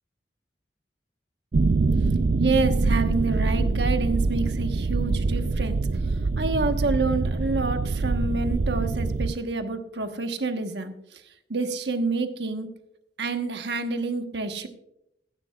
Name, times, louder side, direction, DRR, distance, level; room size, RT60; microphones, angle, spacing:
sound 1, 1.5-9.3, right 3 dB, 50° right, 0.4 m, -24 dB
voice 1, 2.4-5.9 6.4-11.2 11.5-12.7 13.2-14.7, right 3 dB, 70° right, 6 dB, 1.2 m, -28 dB
16.0 x 11.5 x 2.4 m, 0.79 s
head